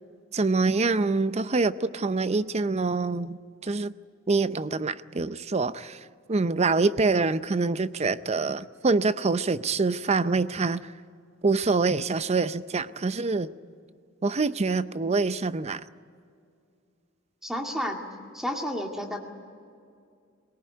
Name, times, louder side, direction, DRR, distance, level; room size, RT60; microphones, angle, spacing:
voice 1, 0.3-3.9 4.3-10.9 11.4-13.5 14.2-15.8, right 3 dB, 30° right, 15 dB, 0.5 m, -25 dB
voice 2, 17.4-18.0 18.3-19.3, equal, ahead, 2 dB, 2.2 m, -31 dB
21.5 x 18.5 x 9.5 m, 2.3 s
head